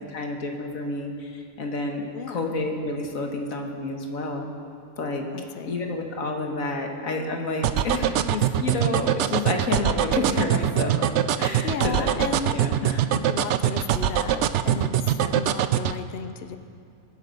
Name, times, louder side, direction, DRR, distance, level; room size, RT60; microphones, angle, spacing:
voice 1, 0.0-4.5 5.0-5.2 5.7-11.1 11.4-13.2 14.7-14.8 15.1-15.4, left 2 dB, 75° left, 2 dB, 1.9 m, -30 dB
voice 2, 2.1-2.5 5.3-5.8 11.6-14.9 15.3-16.6, left 6 dB, 55° left, 9 dB, 0.8 m, -35 dB
sound 1, 7.6-16.0, right 11 dB, 65° right, 0.8 m, -22 dB
23.5 x 9.1 x 5.3 m, 2.4 s
omnidirectional pair, 1.4 m